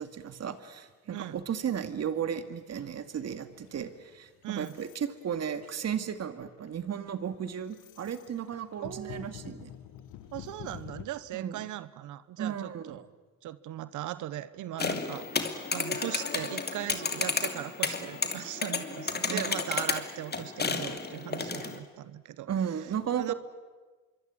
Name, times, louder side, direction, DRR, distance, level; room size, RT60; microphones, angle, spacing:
voice 1, 0.0-9.7 11.3-11.6 12.4-13.0 19.3-19.5 22.5-23.3, right 8 dB, 55° right, 10 dB, 2.2 m, -34 dB
voice 2, 1.1-1.4 4.4-4.8 8.8-9.3 10.3-13.1 13.4-22.5 22.8-22.9 23.1-23.3, right 13 dB, 85° right, 15 dB, 1.0 m, -39 dB
sound 1, 3.5-5.1 5.4-5.9 6.4-6.7 7.1-11.0, left 11 dB, 90° left, 1.4 m, -47 dB
sound 2, 14.8-21.8, left 4 dB, 35° left, 2.8 m, -32 dB
26.0 x 23.5 x 8.8 m, 1.3 s
cardioid pair, 90°, 30 cm